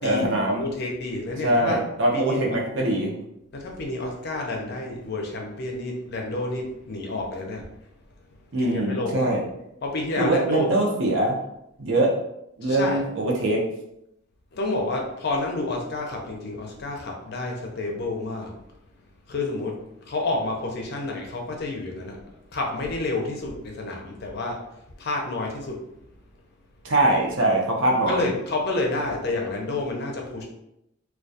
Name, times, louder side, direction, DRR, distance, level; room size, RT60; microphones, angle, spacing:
voice 1, 0.0-0.7 1.4-3.2 8.5-9.5 10.2-11.4 11.8-12.1 12.6-13.7 26.8-28.3, right 1 dB, 70° right, -1 dB, 0.6 m, -22 dB
voice 2, 0.5-1.8 2.1-2.6 3.5-7.6 8.6-9.4 9.8-10.7 12.6-13.0 14.5-18.5 19.3-19.8 20.1-24.6 25.0-25.8 28.1-30.4, left 2 dB, 55° left, 1 dB, 0.5 m, -29 dB
2.3 x 2.2 x 2.6 m, 0.81 s
head